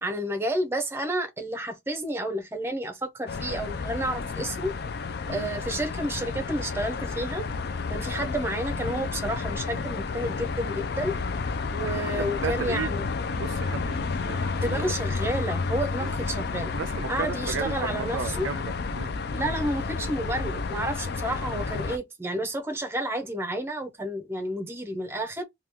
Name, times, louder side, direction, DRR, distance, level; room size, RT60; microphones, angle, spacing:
voice 1, 0.0-4.7 5.3-7.4 7.9-11.2 11.7-13.0 14.6-16.7 17.1-18.5 19.3-25.4, right 1 dB, 10° right, 0.6 m, -30 dB
sound 1, 3.3-22.0, left 4 dB, 55° left, 0.4 m, -31 dB
voice 2, 11.8-13.1 13.3-14.9 16.7-19.1, right 6 dB, 75° right, 0.4 m, -35 dB
2.8 x 2.3 x 3.4 m
head